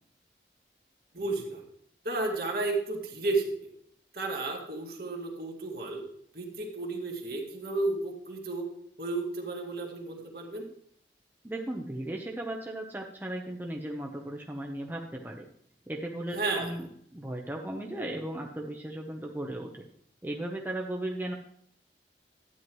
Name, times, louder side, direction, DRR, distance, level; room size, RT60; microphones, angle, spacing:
voice 1, 1.1-1.6 2.0-3.7 4.1-6.0 6.3-8.7 9.0-10.7 16.3-16.7, right 2 dB, 55° right, 0 dB, 2.0 m, -32 dB
voice 2, 11.4-15.5 15.9-16.8 17.1-19.8 20.2-21.3, right 1 dB, 10° right, 0 dB, 0.7 m, -36 dB
12.5 x 9.3 x 3.1 m, 0.68 s
head